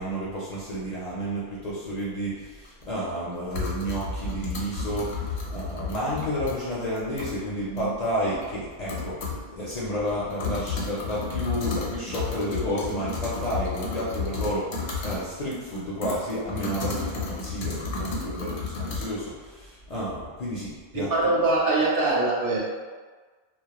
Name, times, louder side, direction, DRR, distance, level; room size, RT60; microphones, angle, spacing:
voice 1, 0.0-21.1, equal, 55° left, -7 dB, 0.5 m, -31 dB
sound 1, 2.6-2.7 3.5-6.5 7.0-7.4 7.8-7.9 8.4-8.5 8.9-9.4 9.7-9.8 10.1-15.2 15.5-19.0, left 4 dB, 75° left, 0.9 m, -32 dB
voice 2, 20.9-22.6, right 2 dB, 65° right, -4 dB, 0.7 m, -23 dB
2.1 x 2.1 x 2.8 m, 1.4 s
omnidirectional pair, 1.0 m